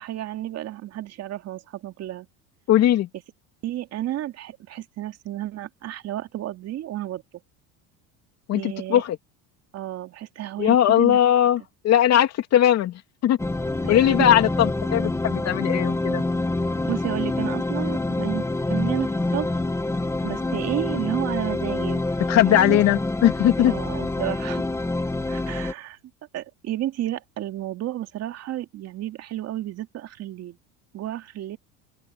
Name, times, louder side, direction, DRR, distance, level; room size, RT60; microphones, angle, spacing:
voice 1, 0.0-2.3 3.6-7.2 8.5-9.0 9.7-11.2 13.8-14.3 16.8-19.6 20.2-22.2 22.5-22.8 23.7-24.6 25.3-26.0 26.3-30.6 30.9-31.6, right 13 dB, 45° right, 2.7 m, -32 dB
voice 2, 2.7-3.1 8.5-9.2 10.6-13.4 13.9-16.2 22.3-23.7, left 11 dB, 45° left, 2.9 m, -19 dB
sound 1, 13.4-25.7, left 2 dB, 10° left, 2.0 m, -26 dB
open air
supercardioid pair, 130°, 35 cm